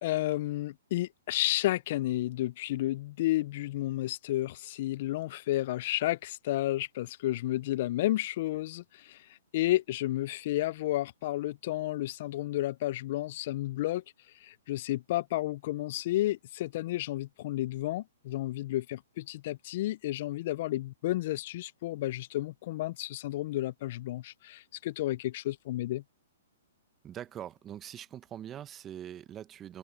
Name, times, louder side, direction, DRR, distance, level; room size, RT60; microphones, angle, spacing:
voice 1, 0.0-9.2 9.5-14.0 14.4-26.0, left 15 dB, 50° left, 0.4 m, -31 dB
voice 2, 27.0-29.8, right 10 dB, 20° right, 1.1 m, -43 dB
open air
hypercardioid pair, 135°, 0 cm